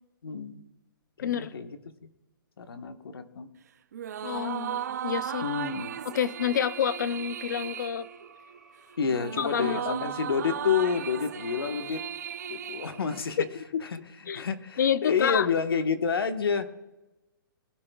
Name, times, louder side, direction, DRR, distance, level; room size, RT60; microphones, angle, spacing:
voice 1, 0.2-0.6 1.2-1.8 2.6-3.5 5.4-6.0 9.0-12.0 12.5-13.5 13.8-16.7, left 6 dB, 90° left, 7 dB, 1.3 m, -29 dB
voice 2, 1.2-1.5 4.2-5.4 6.0-8.1 9.4-10.1 13.4-13.8 14.3-14.4 14.8-15.5, left 8 dB, 55° left, 15 dB, 0.7 m, -28 dB
sound 1, 3.9-13.6, right 9 dB, 45° right, 0.5 m, -36 dB
sound 2, 4.1-10.1, right 3 dB, ahead, 1.8 m, -57 dB
21.5 x 12.5 x 2.3 m, 1.0 s
hypercardioid pair, 170°, 12 cm